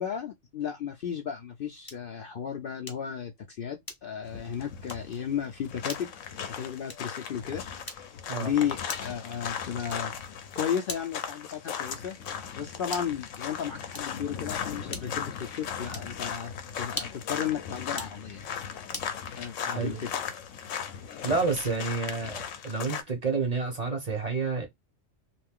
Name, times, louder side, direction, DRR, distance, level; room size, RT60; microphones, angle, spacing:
voice 1, 0.0-6.1 6.5-7.6 7.9-8.1 8.4-10.1 10.6-18.6 19.4-20.3, left 8 dB, 60° left, 0.6 m, -34 dB
sound 1, 1.8-2.2 2.9-3.2 3.8-4.3 4.8-5.1 5.8-6.1 6.8-7.2 7.8-8.3 8.9-9.2 9.9-10.2 10.8-11.3 11.9-12.2 12.8-13.2 13.9-14.3 14.9-15.3 15.9-16.2 16.9-17.3 17.9-18.2 18.9-19.2, left 2 dB, 20° left, 0.7 m, -41 dB
sound 2, 4.2-23.0, left 8 dB, 85° left, 1.0 m, -37 dB
voice 2, 19.7-20.0 21.2-24.7, right 4 dB, 35° right, 0.9 m, -29 dB
2.6 x 2.4 x 3.5 m
omnidirectional pair, 1.3 m